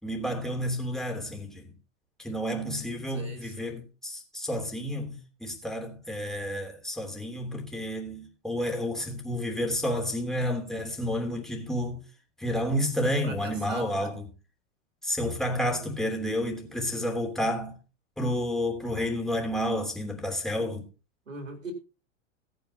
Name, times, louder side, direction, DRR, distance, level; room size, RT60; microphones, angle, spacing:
voice 1, 0.0-1.7 2.2-12.0 12.4-14.2 15.0-17.8 18.2-20.8, equal, ahead, 3.1 m, -30 dB
voice 2, 3.1-3.8 13.0-14.2 15.7-16.0 21.3-21.7, right 3 dB, 80° right, 3.7 m, -41 dB
17.5 x 9.3 x 2.9 m
figure-of-eight pair, 95°, 39 cm